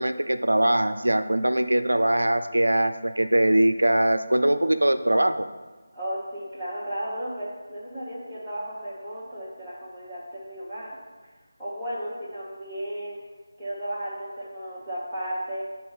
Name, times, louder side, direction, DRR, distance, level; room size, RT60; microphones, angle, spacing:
voice 1, 0.0-5.5, right 1 dB, 75° right, 10 dB, 0.4 m, -22 dB
voice 2, 5.9-11.0 11.6-13.2 13.6-15.6, equal, ahead, -18 dB, 1.0 m, -34 dB
7.4 x 3.9 x 4.1 m, 1.3 s
figure-of-eight pair, 160°, 0 cm